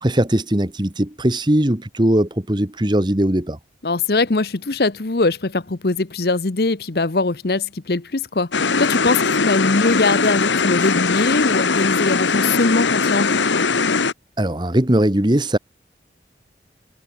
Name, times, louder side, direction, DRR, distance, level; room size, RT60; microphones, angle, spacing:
voice 1, 0.0-3.6 14.4-15.6, right 1 dB, 25° right, 1.4 m, -19 dB
voice 2, 3.8-13.4, left 3 dB, 60° left, 0.9 m, -21 dB
sound 1, 8.5-14.1, left 4 dB, 90° left, 1.3 m, -20 dB
head